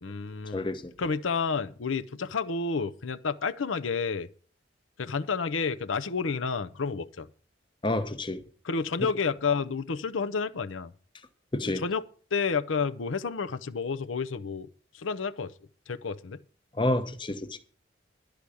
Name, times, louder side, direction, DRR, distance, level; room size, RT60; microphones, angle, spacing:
voice 1, 0.0-0.7 1.0-4.3 5.0-7.3 8.6-10.9 11.8-12.0 12.3-14.7 14.9-15.5 15.9-16.4, left 5 dB, 90° left, 0.7 m, -30 dB
voice 2, 0.5-0.9 7.8-8.4 11.5-11.8 16.8-17.6, left 1 dB, 25° left, 0.9 m, -29 dB
12.0 x 5.0 x 8.4 m
head